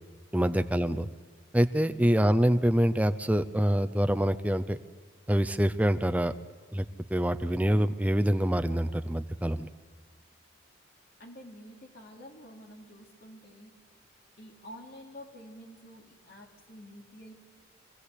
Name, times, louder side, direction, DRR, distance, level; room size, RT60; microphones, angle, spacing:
voice 1, 0.3-1.1 1.5-4.8 5.3-6.3 6.7-6.8 7.1-9.7, equal, 5° right, 9 dB, 0.5 m, -25 dB
voice 2, 11.2-13.7 14.4-17.4, equal, 50° left, 1 dB, 2.9 m, -49 dB
23.5 x 15.0 x 8.4 m, 1.5 s
head